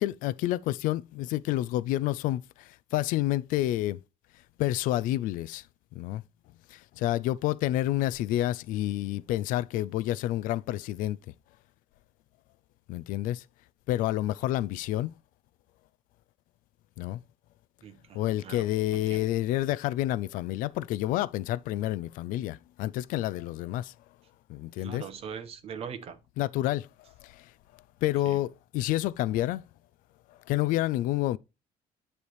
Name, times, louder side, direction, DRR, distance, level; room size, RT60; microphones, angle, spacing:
voice 1, 0.0-4.0 4.6-5.7 6.0-6.2 6.7-11.2 12.9-13.4 13.9-15.1 17.0-17.2 18.1-23.9 24.5-25.1 26.4-26.9 27.2-27.5 28.0-29.6 30.3-31.4, left 15 dB, 85° left, 0.4 m, -29 dB
voice 2, 17.8-18.2 18.4-18.6 18.9-19.2 24.8-26.2 28.3-28.4, right 7 dB, 45° right, 0.9 m, -40 dB
9.8 x 3.3 x 4.5 m
cardioid pair, 150°, 13 cm